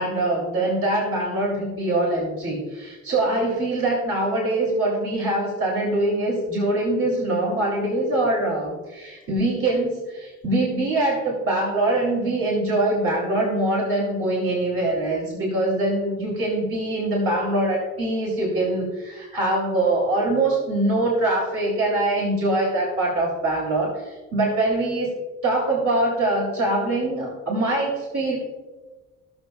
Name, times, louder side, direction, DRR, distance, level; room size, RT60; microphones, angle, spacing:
voice 1, 0.0-25.1 25.4-28.4, right 2 dB, 50° right, -3 dB, 2.8 m, -23 dB
16.5 x 6.3 x 2.3 m, 1.2 s
cardioid pair, 90°, 30 cm